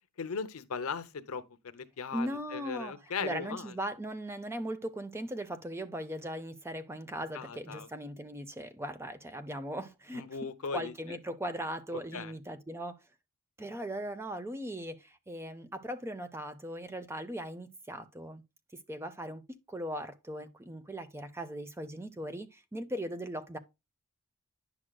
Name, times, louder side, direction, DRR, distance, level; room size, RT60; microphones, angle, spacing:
voice 1, 0.2-1.4 1.7-3.7 7.3-7.9 10.1-11.2 12.1-12.3, left 5 dB, 75° left, 0.7 m, -38 dB
voice 2, 2.1-10.3 10.7-13.0 13.6-18.4 18.9-19.4 19.7-23.6, right 1 dB, 10° right, 0.5 m, -39 dB
9.8 x 6.2 x 2.2 m
head